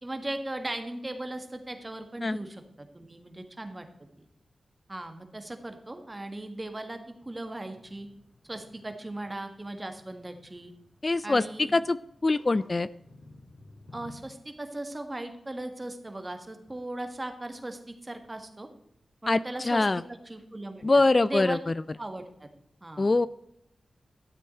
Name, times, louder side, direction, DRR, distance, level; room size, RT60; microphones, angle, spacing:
voice 1, 0.0-3.9 4.2-4.3 4.9-8.1 8.5-10.7 11.2-11.7 13.9-18.7 19.2-21.6 22.0-22.5 22.8-23.1, right 1 dB, 25° right, 6 dB, 1.7 m, -38 dB
sound 1, 7.6-14.2, left 2 dB, 65° left, 4.2 m, -55 dB
voice 2, 11.0-11.4 11.7-12.0 12.2-12.9 19.3-19.4 19.6-20.0 20.8-21.6 23.0-23.3, left 3 dB, 40° left, 16 dB, 0.3 m, -23 dB
13.0 x 7.7 x 4.4 m, 0.78 s
cardioid pair, 50°, 0 cm